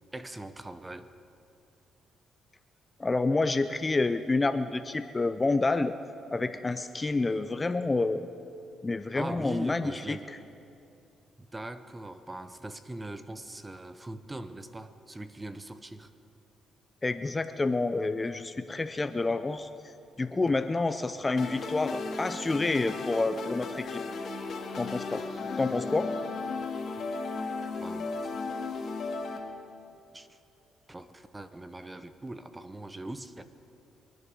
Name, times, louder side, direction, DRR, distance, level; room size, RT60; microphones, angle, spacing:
voice 1, 0.1-1.1 9.1-10.3 11.4-16.1 27.8-28.3 30.1-30.4 30.9-33.4, right 2 dB, 15° right, 11 dB, 0.8 m, -41 dB
voice 2, 3.0-5.9 6.3-8.3 8.8-10.4 17.0-19.7 20.2-24.0 24.8-25.2 25.6-26.1, left 3 dB, 25° left, 11 dB, 0.5 m, -28 dB
sound 1, 21.4-29.4, left 3 dB, 55° left, 2.0 m, -35 dB
23.5 x 10.5 x 5.4 m, 2.7 s
cardioid pair, 90°, 0 cm